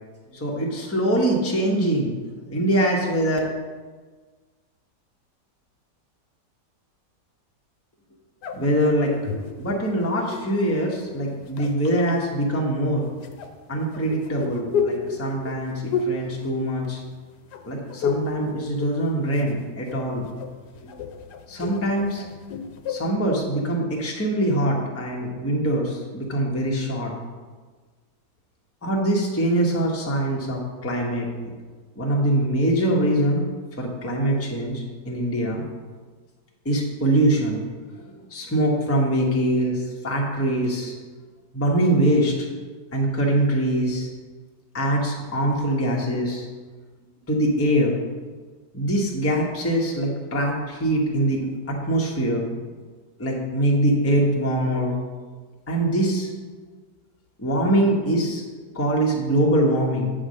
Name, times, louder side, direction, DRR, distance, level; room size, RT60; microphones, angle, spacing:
voice 1, 0.3-2.1 2.5-3.4 8.5-9.2 9.6-13.1 13.7-17.0 17.6-20.3 20.8-20.9 21.5-22.2 22.9-27.1 28.8-31.5 32.0-33.4 33.8-35.6 36.6-37.6 38.0-38.1 38.3-40.9 41.5-42.5 42.9-44.1 44.7-46.5 47.3-47.9 48.7-52.4 53.2-55.0 55.7-56.3 57.4-58.4 58.7-60.1, right 1 dB, 10° left, -2 dB, 0.9 m, -23 dB
sound 1, 8.4-10.6 11.3-12.1 13.2-17.2 17.5-18.4 18.7-19.6 19.9-23.1, left 5 dB, 75° left, 1.2 m, -31 dB
9.5 x 3.7 x 6.3 m, 1.4 s
omnidirectional pair, 1.9 m